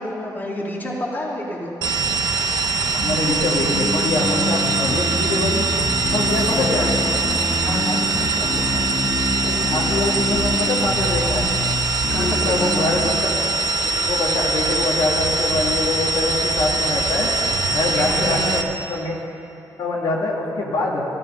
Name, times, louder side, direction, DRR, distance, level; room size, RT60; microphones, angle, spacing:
voice 1, 0.0-1.7 6.3-7.1 7.6-8.0 12.1-12.7 18.0-18.6, left 1 dB, 25° left, -4 dB, 2.6 m, -29 dB
sound 1, 1.8-18.6, right 3 dB, 60° right, 0.9 m, -22 dB
Train, 2.3-12.7, equal, 5° right, 1.4 m, -38 dB
voice 2, 2.9-5.7 6.1-6.9 9.3-11.5 12.1-13.4 13.8-17.3 17.7-18.6 18.9-19.2 19.8-21.0, left 2 dB, 70° left, -3 dB, 1.9 m, -24 dB
sound 2, 3.6-13.1, left 2 dB, 50° left, 2.0 m, -26 dB
13.5 x 13.0 x 5.4 m, 2.7 s
cardioid pair, 110°, 8 cm